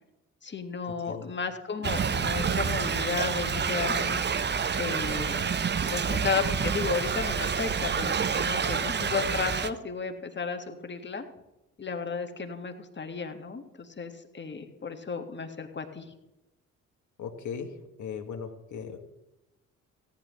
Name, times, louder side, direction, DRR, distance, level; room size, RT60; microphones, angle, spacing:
voice 1, 0.4-4.2 4.8-5.4 5.9-11.2 11.8-16.1, left 5 dB, 25° left, 5 dB, 1.7 m, -33 dB
Thunder / Rain, 1.8-9.7, right 6 dB, 25° right, 0.8 m, -28 dB
voice 2, 17.2-19.0, left 6 dB, 45° left, 6 dB, 1.5 m, -38 dB
17.0 x 10.0 x 3.1 m, 0.95 s
figure-of-eight pair, 40°, 40 cm